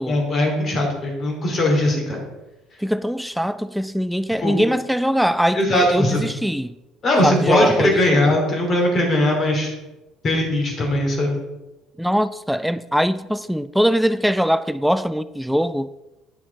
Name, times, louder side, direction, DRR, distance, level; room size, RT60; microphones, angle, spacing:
voice 1, 0.1-2.3 4.4-4.6 5.5-6.2 7.0-9.7 10.2-11.4, left 1 dB, 40° left, 2.6 m, -20 dB
voice 2, 2.8-6.8 7.2-8.2 12.0-15.9, equal, ahead, 0.3 m, -22 dB
9.0 x 6.0 x 4.0 m
figure-of-eight pair, 55°, 0 cm